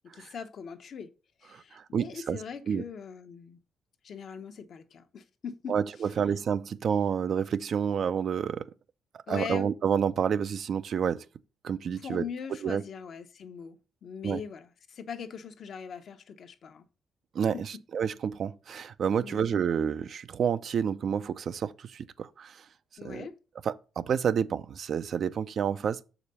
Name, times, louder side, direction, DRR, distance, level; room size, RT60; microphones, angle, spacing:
voice 1, 0.1-1.1 1.4-3.6 4.0-5.7 9.3-9.7 12.0-13.8 14.0-16.8 19.2-19.5 23.0-23.3, left 7 dB, 60° left, 1.0 m, -41 dB
voice 2, 1.5-2.4 2.7-2.8 5.7-8.7 9.3-11.2 11.6-12.2 12.6-12.8 14.2-14.4 17.3-22.6 23.0-23.3 23.6-26.0, right 7 dB, 60° right, 0.5 m, -29 dB
6.6 x 5.0 x 5.4 m
cardioid pair, 90°, 0 cm